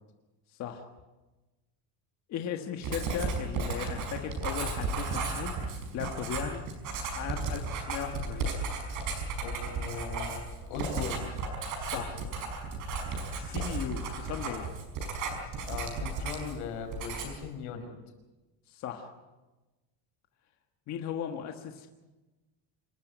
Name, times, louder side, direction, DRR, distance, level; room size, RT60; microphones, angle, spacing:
voice 1, 2.3-5.5 5.9-6.6 7.1-8.5 11.8-12.2 13.4-14.7 18.7-19.1 20.9-21.9, left 9 dB, 35° left, 4 dB, 1.5 m, -37 dB
Writing, 2.8-16.6 16.9-17.5, right 4 dB, 40° right, 5.3 m, -34 dB
voice 2, 9.4-11.3 11.9-12.2 15.7-17.9, left 6 dB, 85° left, 5 dB, 5.5 m, -39 dB
26.0 x 14.5 x 9.5 m, 1.1 s
cardioid pair, 175°, 45 cm